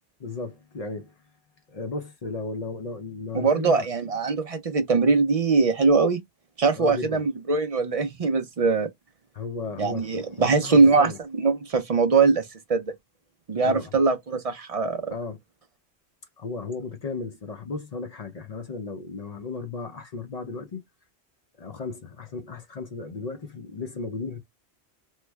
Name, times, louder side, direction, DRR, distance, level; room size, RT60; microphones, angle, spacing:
voice 1, 0.2-1.1 1.7-3.9 6.7-7.2 9.3-11.2 13.6-13.9 15.1-15.4 16.4-20.8 21.6-24.4, left 3 dB, 45° left, 0.5 m, -35 dB
voice 2, 3.3-6.2 6.6-8.9 9.8-11.1 11.4-12.4 12.7-12.9 13.5-15.1, right 4 dB, 50° right, 0.4 m, -21 dB
3.1 x 2.1 x 3.3 m
omnidirectional pair, 1.1 m